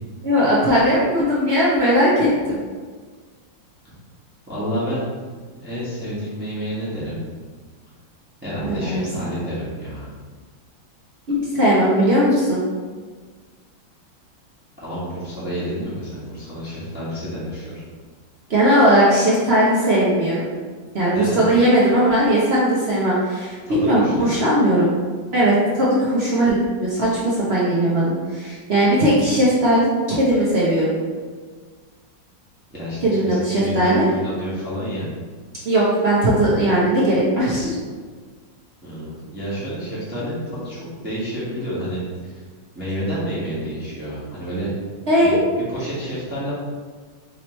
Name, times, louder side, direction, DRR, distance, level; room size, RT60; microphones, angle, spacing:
voice 1, 0.2-2.6 8.6-9.0 11.3-12.6 18.5-20.5 20.9-24.9 25.3-29.9 30.2-30.9 33.0-34.1 35.6-37.7 45.1-45.4, right 1 dB, 55° right, -7 dB, 0.7 m, -18 dB
voice 2, 4.5-5.0 5.6-7.2 8.4-10.1 14.8-17.7 21.1-21.4 23.6-24.3 32.7-35.0 38.8-42.4 42.7-44.7 45.2-45.3 45.7-46.5, equal, 5° right, -10 dB, 1.0 m, -29 dB
5.2 x 3.0 x 3.0 m, 1.5 s
omnidirectional pair, 2.0 m